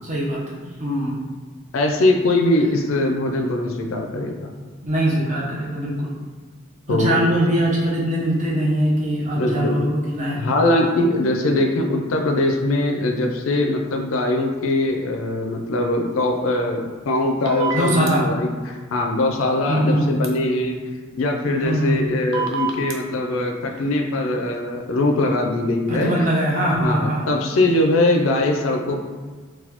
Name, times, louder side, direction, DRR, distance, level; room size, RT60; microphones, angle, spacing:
voice 1, 0.0-1.2 4.8-6.1 6.9-10.4 17.7-18.3 19.7-20.1 21.6-22.2 25.9-27.4, equal, 35° right, -5 dB, 0.7 m, -22 dB
voice 2, 1.7-4.5 6.9-7.2 9.4-9.8 10.4-20.8 21.1-26.1 26.7-29.0, left 2 dB, 75° left, 3 dB, 0.4 m, -21 dB
sound 1, 17.4-18.1 20.2-20.3 22.3-22.9, right 5 dB, 85° right, 0.5 m, -25 dB
4.0 x 2.2 x 2.8 m, 1.5 s
head